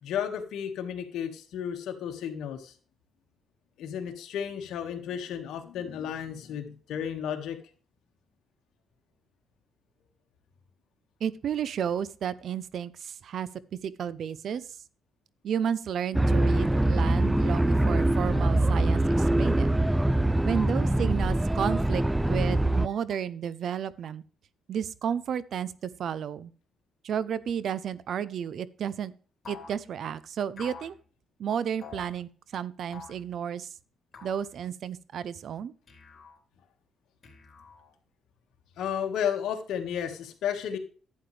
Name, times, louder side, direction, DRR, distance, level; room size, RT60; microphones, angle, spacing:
voice 1, 0.0-2.7 3.8-7.6 38.8-40.8, left 8 dB, 80° left, 4 dB, 1.7 m, -33 dB
voice 2, 11.2-13.5 13.8-14.8 15.4-19.7 20.4-24.2 24.7-26.5 27.0-29.1 29.5-30.9 31.4-33.7 34.2-35.7, right 8 dB, 65° right, 18 dB, 0.6 m, -32 dB
sound 1, 16.1-22.9, right 1 dB, 10° right, 0.4 m, -23 dB
sound 2, 29.4-29.8 30.6-30.9 31.8-32.1 32.9-33.2 34.1-34.5 35.9-36.4 37.2-37.9, left 5 dB, 40° left, 3.6 m, -46 dB
11.5 x 8.8 x 3.4 m, 0.40 s
cardioid pair, 90°, 0 cm